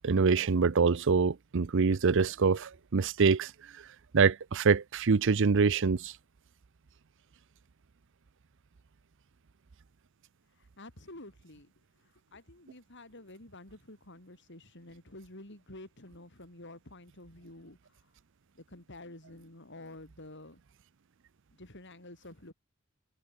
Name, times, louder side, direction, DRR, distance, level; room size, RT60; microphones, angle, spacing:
voice 1, 0.0-3.5 4.1-6.1, right 5 dB, 60° right, 0.6 m, -25 dB
voice 2, 10.5-18.1 18.5-20.6 21.5-22.5, left 1 dB, 60° left, 6.4 m, -50 dB
head